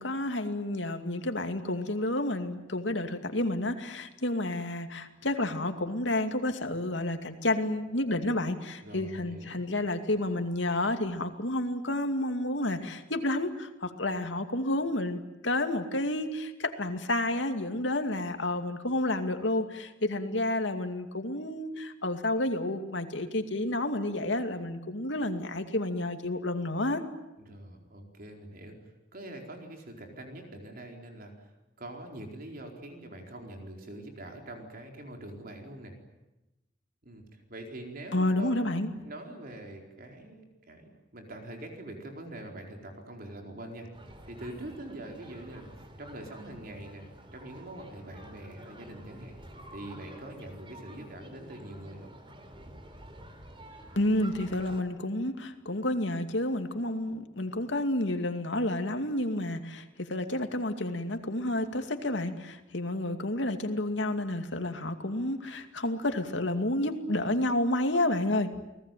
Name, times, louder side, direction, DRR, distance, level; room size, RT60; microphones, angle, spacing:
voice 1, 0.0-27.0 38.1-38.9 54.0-68.5, left 1 dB, 80° left, 6 dB, 2.5 m, -30 dB
voice 2, 8.8-9.6 27.4-28.8 29.1-31.5 31.8-35.9 37.0-38.6 39.0-43.9 44.2-45.7 46.0-47.1 47.3-49.4 49.7-52.1, right 1 dB, 50° right, 2 dB, 4.5 m, -44 dB
sound 1, 43.9-54.8, right 1 dB, 30° right, 3.5 m, -49 dB
30.0 x 19.5 x 9.3 m, 0.99 s
head